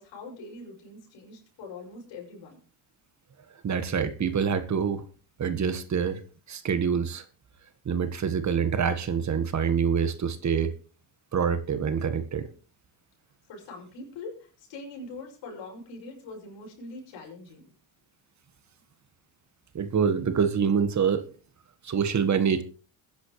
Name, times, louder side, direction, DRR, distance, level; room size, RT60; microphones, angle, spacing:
voice 1, 0.0-2.6 13.5-17.7, left 3 dB, 75° left, 6.3 m, -43 dB
voice 2, 3.6-5.0 5.4-6.2 6.5-7.2 7.8-10.7 11.3-12.5 19.7-21.3 21.8-22.6, right 7 dB, 40° right, 1.5 m, -26 dB
21.5 x 10.5 x 3.2 m
cardioid pair, 95°, 44 cm